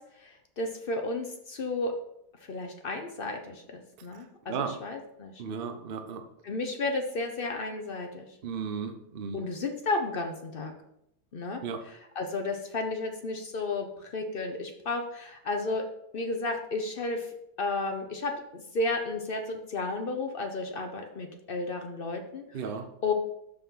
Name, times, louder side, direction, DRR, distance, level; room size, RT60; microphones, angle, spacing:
voice 1, 0.2-1.9 2.4-5.3 6.4-8.2 9.3-10.7 11.3-11.6 12.2-15.8 16.1-17.3 17.6-22.6 23.0-23.1, left 3 dB, 70° left, 4 dB, 0.5 m, -33 dB
voice 2, 5.4-6.2 8.4-9.4 11.6-11.8 22.5-22.9, right 6 dB, 70° right, 7 dB, 0.5 m, -34 dB
6.8 x 5.8 x 5.6 m, 0.78 s
omnidirectional pair, 2.2 m